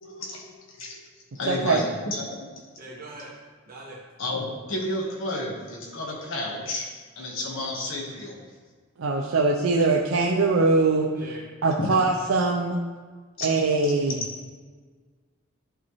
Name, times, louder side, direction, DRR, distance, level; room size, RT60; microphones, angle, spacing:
voice 1, 0.0-0.4 0.7-1.0 1.3-2.5 4.2-6.9 7.2-8.4 11.8-11.9 13.4-13.5, left 1 dB, 65° left, -2 dB, 1.3 m, -31 dB
voice 2, 1.5-1.8 9.0-11.1 11.6-12.8 13.4-14.2, right 3 dB, 75° right, 1 dB, 0.6 m, -22 dB
voice 3, 2.8-3.3 3.6-4.0 11.1-11.4, right 2 dB, 45° right, -4 dB, 1.3 m, -41 dB
11.0 x 4.2 x 3.1 m, 1.5 s
head